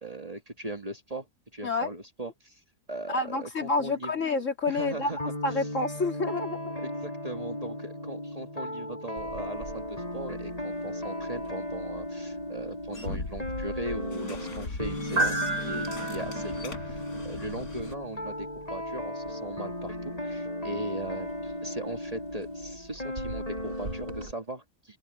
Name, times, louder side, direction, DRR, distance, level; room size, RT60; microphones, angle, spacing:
voice 1, 0.0-1.3 1.5-2.6 2.9-4.1 4.7-5.3 6.8-25.0, right 1 dB, 25° right, 1.7 m, -38 dB
voice 2, 3.1-6.6, left 3 dB, 60° left, 2.9 m, -29 dB
sound 1, 5.2-24.3, left 1 dB, 25° left, 6.0 m, -36 dB
sound 2, 9.2-24.3, right 3 dB, 65° right, 3.2 m, -38 dB
sound 3, 12.9-17.9, left 2 dB, 90° left, 4.6 m, -39 dB
open air
omnidirectional pair, 1.5 m